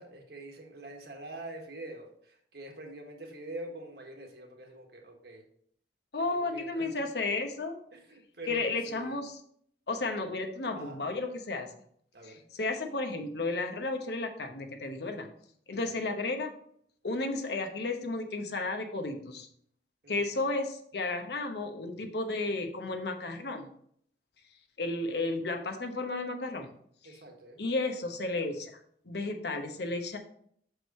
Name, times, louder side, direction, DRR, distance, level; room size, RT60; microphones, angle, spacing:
voice 1, 0.0-5.4 6.4-6.9 7.9-9.2 10.7-11.0 12.1-12.4 15.8-16.0 20.0-20.3 27.0-27.6, right 2 dB, 60° right, 2 dB, 1.4 m, -45 dB
voice 2, 6.1-7.8 8.5-9.4 9.9-11.7 12.5-15.3 15.7-16.5 17.0-19.5 20.1-23.7 24.8-26.7 27.6-28.7 29.1-30.2, left 2 dB, 65° left, 4 dB, 0.9 m, -33 dB
6.4 x 5.0 x 4.2 m, 0.65 s
head